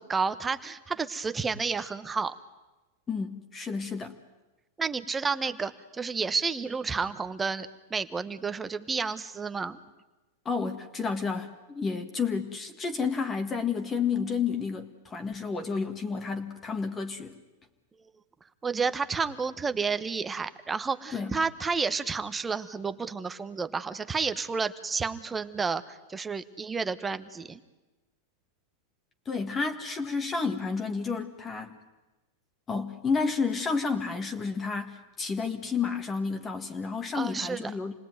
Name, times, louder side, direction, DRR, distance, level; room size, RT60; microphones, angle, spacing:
voice 1, 0.0-2.3 4.8-9.8 18.6-27.6 37.1-37.7, right 5 dB, 15° right, 12 dB, 1.2 m, -31 dB
voice 2, 3.1-4.1 10.5-17.3 21.1-21.4 29.3-31.8 32.7-37.9, left 5 dB, 20° left, 6 dB, 1.8 m, -31 dB
28.0 x 19.0 x 9.4 m, 1.1 s
supercardioid pair, 140°, 0 cm